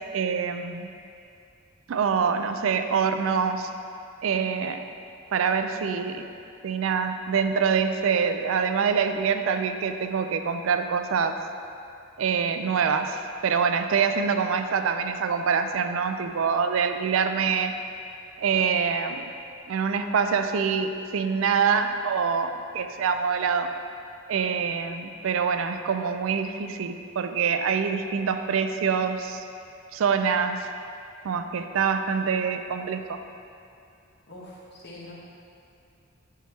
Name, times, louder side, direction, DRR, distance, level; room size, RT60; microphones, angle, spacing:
voice 1, 0.1-0.9 1.9-3.7 4.2-4.8 5.3-6.3 6.6-11.4 12.2-17.7 18.4-19.3 19.7-23.7 24.3-29.4 29.9-30.7 31.2-33.2, right 6 dB, 70° right, 8 dB, 0.4 m, -25 dB
voice 2, 34.3-35.1, left 1 dB, 55° left, -7 dB, 1.3 m, -44 dB
10.0 x 3.4 x 3.1 m, 2.6 s
head